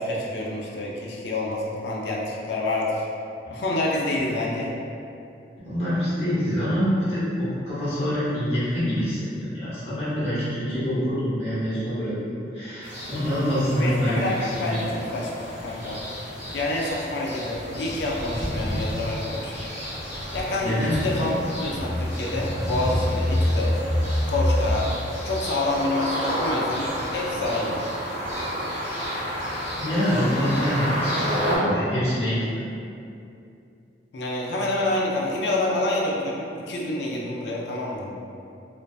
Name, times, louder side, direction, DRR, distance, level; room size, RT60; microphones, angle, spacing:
voice 1, 0.0-3.1 3.5-4.7 13.8-16.0 16.5-19.6 20.3-21.3 21.6-23.8 24.3-27.8 34.1-38.1, left 2 dB, 70° left, -3 dB, 0.4 m, -27 dB
voice 2, 5.6-14.8 20.6-20.9 21.2-21.3 29.8-32.6, equal, 35° left, -11 dB, 0.8 m, -26 dB
sound 1, 12.8-31.6, equal, 40° right, 0.9 m, -31 dB
sound 2, 16.5-16.6 16.9-17.0 17.5-17.6 18.5-24.7, left 1 dB, 15° right, 0.8 m, -28 dB
2.5 x 2.3 x 2.3 m, 2.6 s
head